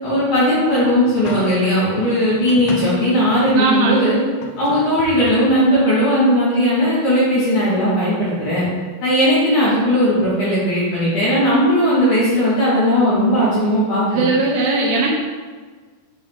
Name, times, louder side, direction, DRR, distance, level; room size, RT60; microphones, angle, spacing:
voice 1, 0.0-4.2 4.6-8.7 9.0-14.2, equal, 60° left, -12 dB, 2.7 m, -17 dB
sound 1, 0.7-1.8 2.3-3.6 4.0-4.1 4.4-5.6, left 4 dB, 90° left, 2.9 m, -35 dB
voice 2, 3.6-4.2 14.1-15.2, right 3 dB, 90° right, -2 dB, 2.0 m, -19 dB
8.4 x 3.8 x 3.4 m, 1.5 s
omnidirectional pair, 5.0 m